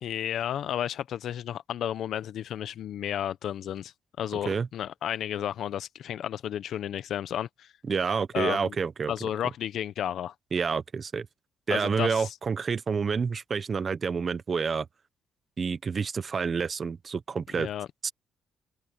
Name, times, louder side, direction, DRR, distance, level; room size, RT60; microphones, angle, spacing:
voice 1, 0.0-7.7 8.3-8.8 9.1-10.3 11.7-12.3 17.6-17.9, left 10 dB, 70° left, 0.9 m, -32 dB
voice 2, 7.8-9.1 10.5-11.3 11.7-14.9 15.6-17.7 18.0-18.1, right 5 dB, 40° right, 1.0 m, -28 dB
cardioid pair, 90°, 0 cm